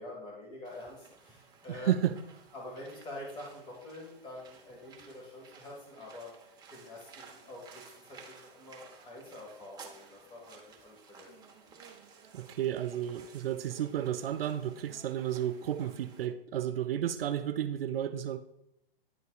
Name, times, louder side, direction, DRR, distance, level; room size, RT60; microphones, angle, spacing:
voice 1, 0.0-2.0 2.5-11.3, left 1 dB, 20° left, 1.6 m, -46 dB
sound 1, 0.6-16.3, right 5 dB, 15° right, 0.9 m, -55 dB
voice 2, 1.7-2.2 12.3-18.4, right 10 dB, 70° right, 0.5 m, -32 dB
10.5 x 4.0 x 2.4 m
hypercardioid pair, 130°, 30 cm